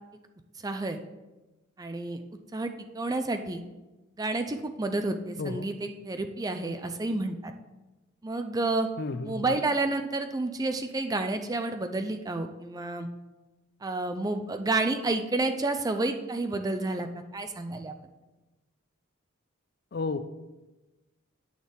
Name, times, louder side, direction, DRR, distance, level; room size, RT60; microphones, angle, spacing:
voice 1, 0.6-1.0 1.8-2.2 2.5-3.6 4.2-7.5 8.2-8.9 9.2-13.1 13.8-17.1 17.3-17.9, right 2 dB, 15° right, 7 dB, 0.4 m, -30 dB
voice 2, 9.0-9.5 19.9-20.3, left 3 dB, 50° left, 11 dB, 0.4 m, -33 dB
9.2 x 6.3 x 3.5 m, 1.1 s
head